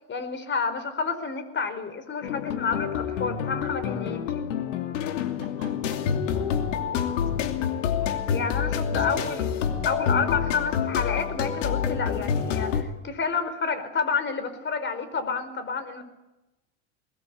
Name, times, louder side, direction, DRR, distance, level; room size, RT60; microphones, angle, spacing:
voice 1, 0.1-4.4 8.3-9.5 9.8-16.0, left 5 dB, 30° left, 11 dB, 4.8 m, -29 dB
sound 1, 2.2-12.8, left 8 dB, 85° left, 2.8 m, -27 dB
voice 2, 5.4-8.3 8.9-9.4, right 6 dB, 40° right, 2 dB, 5.2 m, -46 dB
22.5 x 20.0 x 8.5 m, 0.99 s
hypercardioid pair, 100°, 37 cm